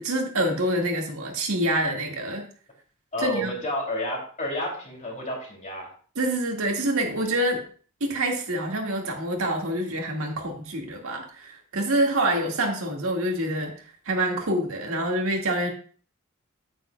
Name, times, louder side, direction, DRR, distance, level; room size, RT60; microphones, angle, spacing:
voice 1, 0.0-2.5 3.2-3.5 6.2-7.6 8.0-15.7, right 1 dB, 70° right, 1 dB, 1.8 m, -26 dB
voice 2, 3.1-5.9, left 1 dB, 35° left, -1 dB, 2.6 m, -30 dB
9.1 x 8.9 x 2.2 m, 0.43 s
head